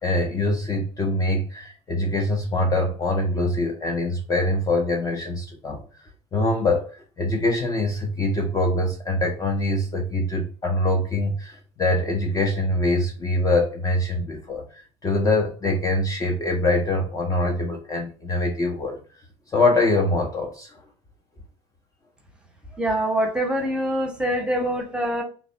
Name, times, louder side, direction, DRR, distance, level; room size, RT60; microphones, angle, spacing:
voice 1, 0.0-5.8 6.3-6.9 7.2-19.0 19.5-20.7, left 2 dB, 20° left, 1 dB, 0.6 m, -24 dB
voice 2, 22.8-25.2, right 1 dB, 5° right, 2 dB, 0.9 m, -24 dB
3.3 x 2.2 x 2.5 m, 0.37 s
figure-of-eight pair, 55°, 15 cm